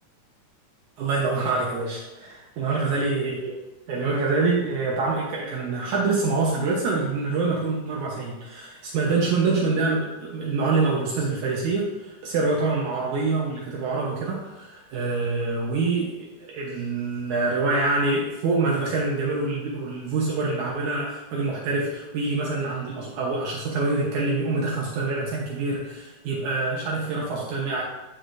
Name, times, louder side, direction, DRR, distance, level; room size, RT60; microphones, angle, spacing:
voice 1, 1.0-3.5 3.9-27.8, right 3 dB, 75° right, -3 dB, 2.4 m, -26 dB
11.0 x 4.9 x 2.6 m, 1.1 s
omnidirectional pair, 3.5 m